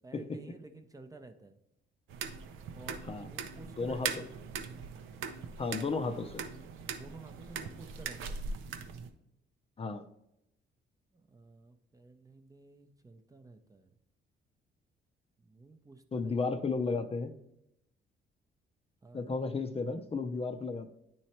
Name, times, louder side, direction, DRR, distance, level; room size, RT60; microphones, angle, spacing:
voice 1, 0.0-1.6 2.7-4.3 7.0-8.4 11.1-13.9 15.4-16.4 19.0-19.4, right 3 dB, 15° right, 6 dB, 0.6 m, -52 dB
sound 1, 2.1-9.1, right 6 dB, 85° right, 0.6 m, -41 dB
voice 2, 3.8-4.1 5.6-6.4 9.8-10.0 16.1-17.3 19.1-20.9, left 4 dB, 30° left, 7 dB, 0.5 m, -33 dB
9.1 x 3.1 x 4.2 m, 0.82 s
cardioid pair, 90°, 20 cm